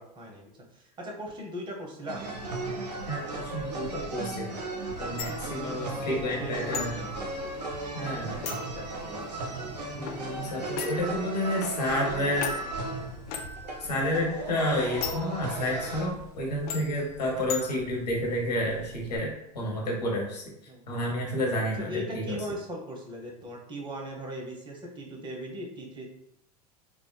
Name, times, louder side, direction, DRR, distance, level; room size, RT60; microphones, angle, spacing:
voice 1, 0.0-2.2 5.6-7.3 8.2-9.4 20.7-20.8 21.8-26.1, equal, 25° right, 0 dB, 0.8 m, -39 dB
sound 1, 2.1-16.1, right 2 dB, 85° right, 0.5 m, -36 dB
voice 2, 3.1-4.6 5.0-7.0 7.9-8.4 9.9-12.6 13.8-20.4 20.9-22.4, equal, 80° left, -1 dB, 0.8 m, -30 dB
sound 2, 5.2-19.2, left 5 dB, 60° left, 0.5 m, -41 dB
3.4 x 2.1 x 2.2 m, 0.81 s
hypercardioid pair, 80°, 21 cm